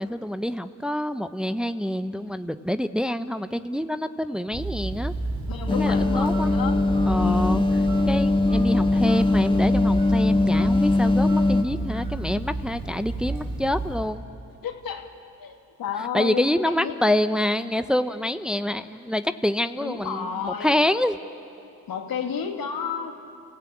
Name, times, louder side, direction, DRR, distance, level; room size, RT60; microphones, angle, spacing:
voice 1, 0.0-5.1 5.7-6.5 7.0-7.6 8.1-14.2 16.1-21.2, left 1 dB, ahead, 10 dB, 0.8 m, -26 dB
Telephone, 4.5-14.2, right 2 dB, 70° right, 3.2 m, -32 dB
voice 2, 5.5-6.9 7.2-7.6 14.6-15.1 15.4-16.5 16.8-17.0 19.8-20.7 21.9-23.1, left 7 dB, 70° left, 3 dB, 2.5 m, -31 dB
sound 1, 5.7-11.6, left 2 dB, 15° left, 1.9 m, -21 dB
30.0 x 16.0 x 8.7 m, 2.6 s
supercardioid pair, 45°, 36 cm